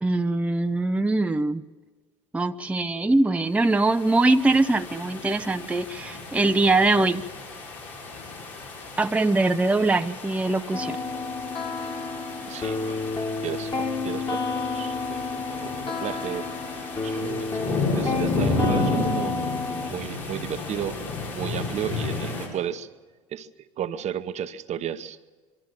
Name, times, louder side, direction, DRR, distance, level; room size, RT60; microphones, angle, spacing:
voice 1, 0.0-1.6 2.3-7.2 9.0-11.0, right 2 dB, 10° right, 8 dB, 0.6 m, -22 dB
sound 1, 3.6-22.5, left 3 dB, 80° left, 6.1 m, -33 dB
sound 2, 10.7-19.9, left 4 dB, 30° left, 2.1 m, -30 dB
voice 2, 12.5-19.4 19.8-21.1 21.4-22.9 23.3-25.2, right 9 dB, 45° right, 12 dB, 0.9 m, -34 dB
23.0 x 13.0 x 9.0 m, 1.4 s
hypercardioid pair, 70°, 16 cm